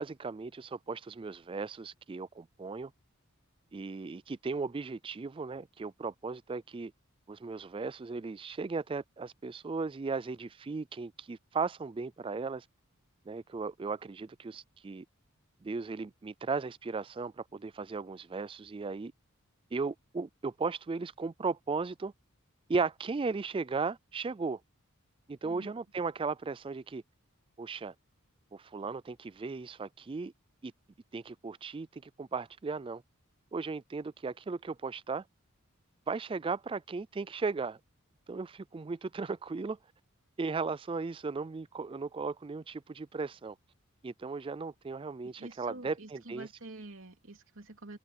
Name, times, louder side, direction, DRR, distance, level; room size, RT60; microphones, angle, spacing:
voice 1, 0.0-2.9 3.7-6.9 7.3-12.7 13.3-15.0 15.6-19.1 19.7-22.1 22.7-24.6 25.3-27.0 27.6-27.9 28.5-30.3 30.6-30.7 31.1-33.0 33.5-35.2 36.1-37.8 38.3-39.8 40.4-43.6 44.0-46.5, right 4 dB, 25° right, 0.4 m, -36 dB
voice 2, 25.4-25.8 45.2-48.0, right 2 dB, 65° right, 3.4 m, -47 dB
head